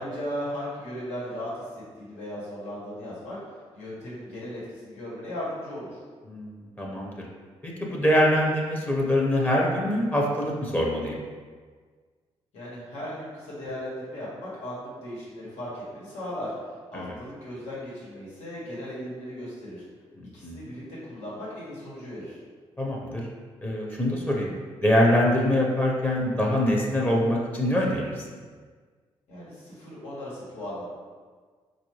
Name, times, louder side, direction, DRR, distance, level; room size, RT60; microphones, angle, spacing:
voice 1, 0.0-3.4 3.7-6.0 12.5-16.5 16.9-19.8 20.3-22.4 29.3-30.8, equal, 85° left, -7 dB, 1.5 m, -37 dB
voice 2, 6.2-7.3 7.6-11.2 16.9-17.2 20.4-20.6 22.8-23.3 23.6-24.5 24.8-28.3, left 1 dB, 15° left, -2 dB, 0.8 m, -24 dB
4.1 x 2.6 x 3.1 m, 1.6 s
supercardioid pair, 65°, 11 cm